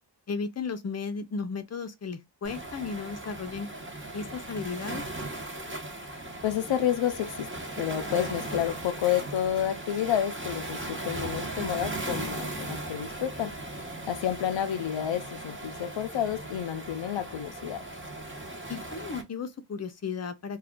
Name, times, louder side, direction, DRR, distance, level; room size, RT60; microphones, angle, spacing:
voice 1, 0.3-3.7 4.1-5.0 18.7-20.6, left 5 dB, 35° left, 0.6 m, -35 dB
Waves surf, 2.4-19.2, right 2 dB, 25° right, 1.0 m, -38 dB
voice 2, 6.4-13.6 14.1-17.8, left 10 dB, 90° left, 0.5 m, -30 dB
2.5 x 2.3 x 3.5 m
wide cardioid pair, 50°, 44 cm